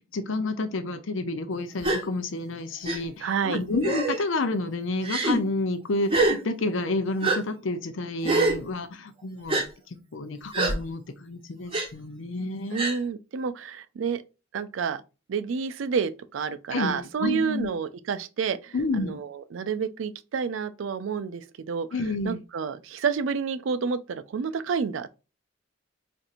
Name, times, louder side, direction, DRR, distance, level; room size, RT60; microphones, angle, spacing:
voice 1, 0.0-9.6 10.1-12.8 16.7-17.7 18.7-19.2 21.9-22.4, left 2 dB, 70° left, 0.6 m, -30 dB
Gasp, 1.8-2.0 2.8-3.0 3.8-4.2 5.0-5.4 6.1-6.4 7.2-7.4 8.2-8.6 9.5-9.6 10.5-10.7 11.7-11.9 12.7-13.0, right 2 dB, 30° right, 0.9 m, -24 dB
voice 2, 3.2-3.6 12.7-14.2 14.5-15.0 15.3-21.9 22.2-25.2, right 6 dB, 75° right, 0.4 m, -29 dB
4.2 x 2.6 x 2.5 m
head